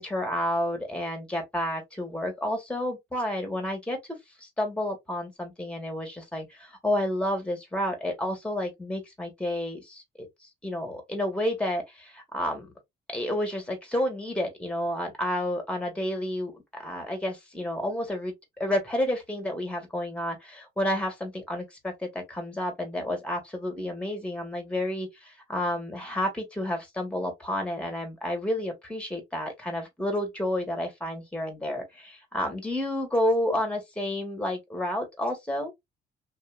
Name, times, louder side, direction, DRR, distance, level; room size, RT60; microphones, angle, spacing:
voice 1, 0.0-4.0 4.4-10.3 10.6-12.7 13.1-35.7, left 1 dB, 5° left, 1.5 m, -30 dB
2.8 x 2.6 x 2.3 m
cardioid pair, 90°, 20 cm